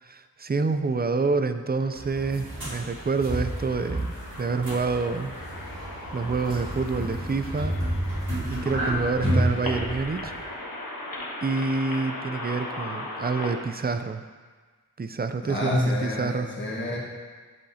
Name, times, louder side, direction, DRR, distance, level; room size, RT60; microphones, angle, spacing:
voice 1, 0.0-5.3 6.1-7.8 8.5-10.3 11.4-14.2 15.0-16.5, right 4 dB, 30° right, 9 dB, 0.4 m, -27 dB
sound 1, 1.8-13.5, left 1 dB, 80° left, 1.1 m, -38 dB
sound 2, 2.0-10.4, right 1 dB, 85° right, 2.0 m, -30 dB
voice 2, 15.4-17.0, left 1 dB, 35° left, -5 dB, 1.5 m, -27 dB
9.0 x 5.8 x 2.7 m, 1.4 s
wide cardioid pair, 60°, 35 cm